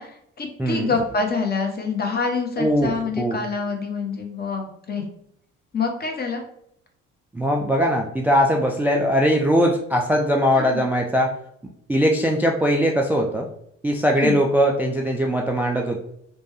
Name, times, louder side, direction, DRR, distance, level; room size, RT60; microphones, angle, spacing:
voice 1, 0.0-5.0 5.7-6.4 10.6-10.8 14.1-14.4, left 4 dB, 25° left, 3 dB, 0.8 m, -26 dB
voice 2, 0.6-1.0 2.6-3.4 7.3-11.3 11.9-13.5 13.8-16.0, equal, 5° right, 1 dB, 0.3 m, -20 dB
3.0 x 2.1 x 3.0 m, 0.71 s
figure-of-eight pair, 45°, 35 cm